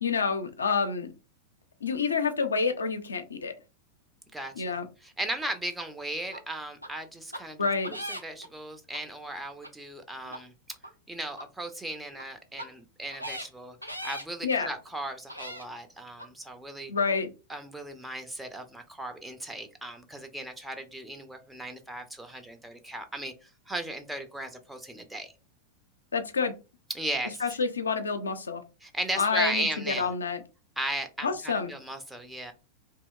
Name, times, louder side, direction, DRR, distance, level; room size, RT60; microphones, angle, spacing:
voice 1, 0.0-1.1 1.8-3.5 4.6-4.9 7.6-7.9 14.4-14.7 16.9-17.3 26.1-26.5 27.4-28.6 29.2-30.4 31.2-31.7, left 5 dB, 75° left, 0.4 m, -28 dB
voice 2, 4.3-4.7 5.2-7.6 8.1-10.8 11.1-16.9 17.5-25.3 26.9-27.4 28.8-30.1 30.8-32.5, right 1 dB, 5° right, 0.5 m, -36 dB
sound 1, 6.3-6.4 6.8-6.9 7.3-7.4 7.8-8.5 8.9-9.0 9.6-9.7 10.2-10.4 10.8-10.9 11.4-11.5 12.1-12.2 12.6-12.7 13.1-13.5 13.8-14.2 14.9-15.0 15.3-15.7 16.2-16.3, equal, 90° right, 0.4 m, -38 dB
2.8 x 2.7 x 2.2 m
figure-of-eight pair, 90°, 0 cm